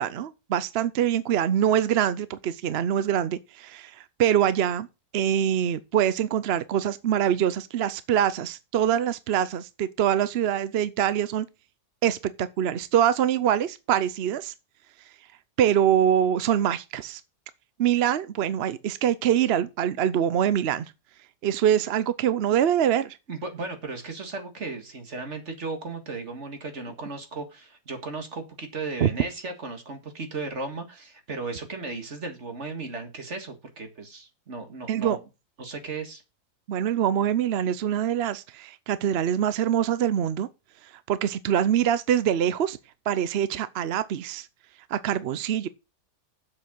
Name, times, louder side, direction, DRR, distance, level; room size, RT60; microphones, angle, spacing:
voice 1, 0.0-3.9 4.2-4.9 5.1-11.5 12.0-14.5 15.6-17.2 17.8-20.9 21.4-23.2 29.0-29.1 34.9-35.2 36.7-40.5 41.1-42.8 43.1-44.5 44.9-45.7, right 10 dB, 60° right, 0.6 m, -24 dB
voice 2, 23.3-35.2 35.6-36.2, right 3 dB, 45° right, 2.2 m, -35 dB
7.7 x 6.8 x 7.4 m
omnidirectional pair, 1.7 m